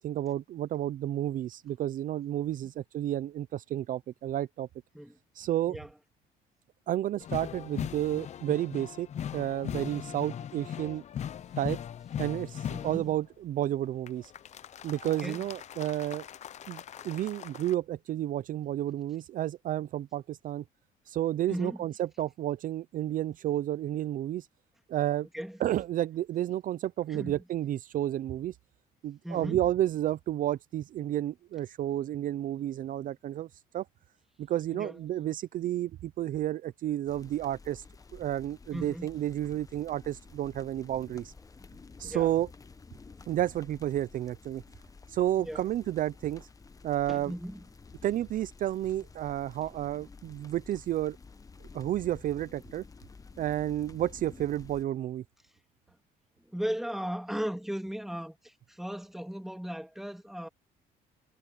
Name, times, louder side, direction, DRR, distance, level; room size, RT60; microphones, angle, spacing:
voice 1, 0.0-4.7 5.4-5.8 6.9-9.1 9.3-11.0 11.6-11.8 12.2-14.3 14.8-16.2 16.7-20.6 21.1-24.5 24.9-25.3 25.6-28.5 29.0-33.5 33.7-33.8 34.4-37.8 38.1-41.3 42.0-42.5 43.3-44.6 45.1-46.5 46.8-47.3 48.0-51.2 51.7-52.8 53.4-55.2, right 12 dB, 55° right, 0.5 m, -31 dB
sound 1, 7.2-13.2 14.1-17.7, left 9 dB, 45° left, 0.6 m, -39 dB
voice 2, 12.7-13.1 15.0-15.5 21.5-21.8 25.3-25.6 27.1-27.4 29.2-29.6 34.7-35.0 38.7-39.1 42.0-42.3 45.4-45.7 47.1-47.6 56.5-60.5, equal, ahead, 2.1 m, -37 dB
sound 2, 37.1-54.8, left 4 dB, 20° left, 0.9 m, -52 dB
cardioid pair, 110°, 17 cm